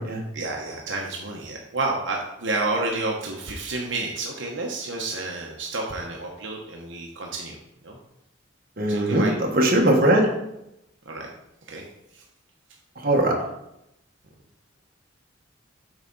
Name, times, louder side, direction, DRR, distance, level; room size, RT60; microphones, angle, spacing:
voice 1, 0.3-7.6 7.8-8.0 8.9-9.4 11.0-11.3 11.7-11.8 12.1-12.2, right 2 dB, 75° right, 0 dB, 1.0 m, -30 dB
voice 2, 8.8-10.3 13.0-13.3, right 1 dB, 50° right, 0 dB, 1.5 m, -20 dB
8.0 x 4.9 x 4.1 m, 0.85 s
head